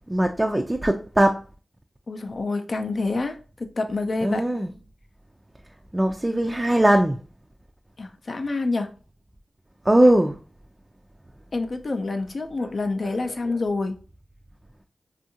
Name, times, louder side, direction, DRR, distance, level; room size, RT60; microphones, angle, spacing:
voice 1, 0.1-1.4 4.2-4.7 5.9-7.2 9.8-10.4 13.0-13.6, right 1 dB, 20° right, 0.3 m, -20 dB
voice 2, 2.1-4.4 8.0-8.9 11.5-14.0, left 3 dB, 60° left, 0.4 m, -27 dB
2.7 x 2.5 x 2.7 m
cardioid pair, 45°, 0 cm